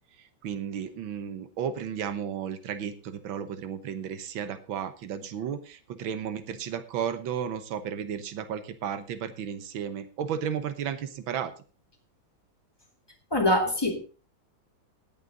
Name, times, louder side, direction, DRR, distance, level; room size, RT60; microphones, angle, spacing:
voice 1, 0.2-11.5, right 8 dB, 85° right, 11 dB, 1.8 m, -33 dB
voice 2, 13.3-14.0, left 1 dB, 10° left, 1 dB, 2.4 m, -24 dB
18.0 x 6.8 x 3.9 m, 0.36 s
omnidirectional pair, 2.1 m